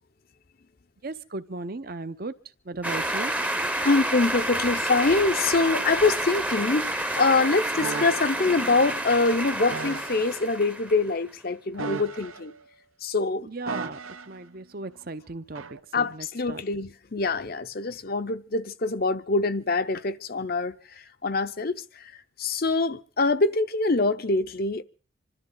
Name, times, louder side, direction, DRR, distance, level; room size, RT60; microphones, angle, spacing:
voice 1, 1.0-2.3 2.6-3.3 13.4-14.0 14.3-16.6, right 3 dB, 45° right, 0.8 m, -36 dB
sound 1, 2.8-11.1, right 1 dB, 5° right, 0.8 m, -29 dB
voice 2, 3.8-12.5 13.0-13.5 15.9-20.8 21.2-22.0 22.4-24.8, left 3 dB, 45° left, 0.7 m, -24 dB
sound 2, 7.8-8.4 9.7-10.4 11.7-12.6 13.7-14.4 15.5-15.8, right 4 dB, 85° right, 1.1 m, -35 dB
26.5 x 13.0 x 3.9 m
head